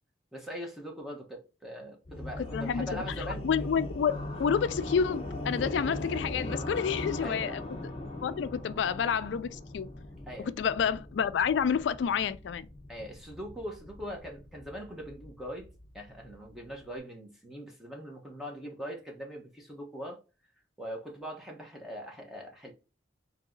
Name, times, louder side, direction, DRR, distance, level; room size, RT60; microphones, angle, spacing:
voice 1, 0.3-3.5 7.2-7.6 10.3-10.5 12.9-15.7 15.9-20.2 20.8-22.7, equal, ahead, 1.1 m, -41 dB
sound 1, 2.1-16.9, left 1 dB, 30° left, 0.7 m, -40 dB
voice 2, 2.4-4.1 4.4-7.6 8.2-9.9 10.4-12.7, left 7 dB, 85° left, 0.3 m, -29 dB
3.8 x 2.9 x 3.8 m
head